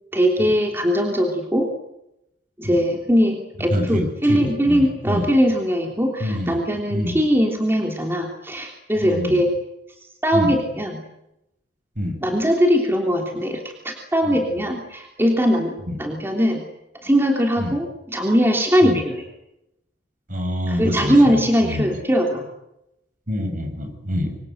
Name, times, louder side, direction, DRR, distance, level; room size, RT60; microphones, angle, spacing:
voice 1, 0.1-1.7 2.6-9.5 10.2-11.0 12.2-15.7 16.0-16.6 17.0-19.2 20.7-22.4, equal, 15° right, 2 dB, 3.3 m, -20 dB
voice 2, 3.7-5.3 6.2-6.6 6.9-7.2 9.0-9.5 10.3-10.6 12.0-12.2 14.2-14.4 15.9-16.0 17.6-17.8 18.8-19.0 20.3-21.9 23.3-24.4, left 1 dB, 45° right, 5 dB, 7.9 m, -26 dB
26.0 x 25.5 x 8.0 m, 0.87 s
head